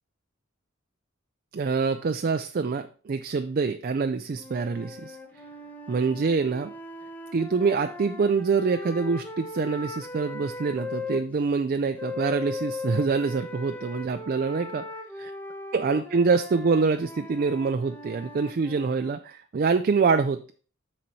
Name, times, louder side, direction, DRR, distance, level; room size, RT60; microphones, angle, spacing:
voice 1, 1.5-5.2 5.9-6.7 7.3-14.8 15.2-15.3 15.7-20.5, right 4 dB, 45° right, 8 dB, 0.4 m, -25 dB
sound 1, 4.3-11.2 12.0-19.1, left 2 dB, 10° left, 0.8 m, -38 dB
9.7 x 4.1 x 4.5 m, 0.41 s
head